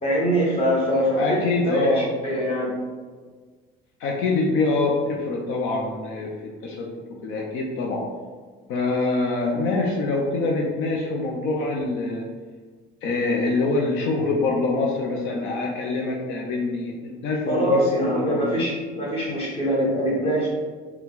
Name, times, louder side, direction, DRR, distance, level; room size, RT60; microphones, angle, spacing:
voice 1, 0.0-2.7 17.5-20.5, equal, 25° left, -4 dB, 1.4 m, -23 dB
voice 2, 1.2-2.1 4.0-8.0 8.7-12.3 13.0-18.5, left 3 dB, 70° left, -1 dB, 0.6 m, -25 dB
4.5 x 2.3 x 3.8 m, 1.4 s
cardioid pair, 120°, 21 cm